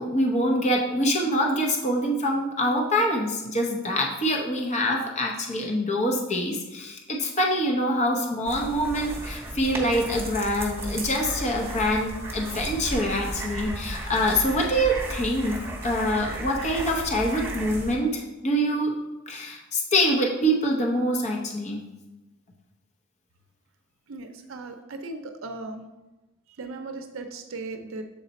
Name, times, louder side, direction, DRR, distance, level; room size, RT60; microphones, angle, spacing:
voice 1, 0.0-18.9 19.3-21.8, equal, 35° left, 1 dB, 0.8 m, -25 dB
sound 1, 8.5-18.0, right 1 dB, 10° right, 1.1 m, -34 dB
voice 2, 24.1-25.9 26.6-28.0, right 3 dB, 70° right, 7 dB, 0.5 m, -37 dB
7.3 x 4.0 x 4.1 m, 1.1 s
head